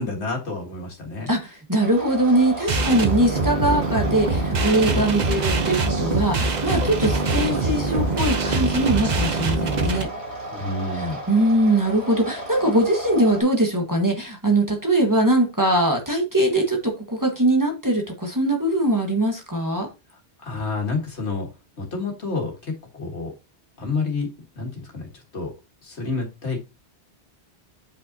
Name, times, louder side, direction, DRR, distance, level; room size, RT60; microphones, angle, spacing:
voice 1, 0.0-1.3 10.5-11.2 20.4-21.5 21.8-23.3 23.8-24.3 24.6-25.1 25.3-25.5 25.8-26.6, left 3 dB, 80° left, 2.0 m, -29 dB
voice 2, 1.3-10.1 11.0-19.9, right 1 dB, 20° right, 1.5 m, -21 dB
sound 1, 1.8-13.4, right 1 dB, 75° right, 3.0 m, -34 dB
sound 2, 2.7-10.0, right 3 dB, 45° right, 0.9 m, -23 dB
8.3 x 5.5 x 2.8 m
omnidirectional pair, 1.1 m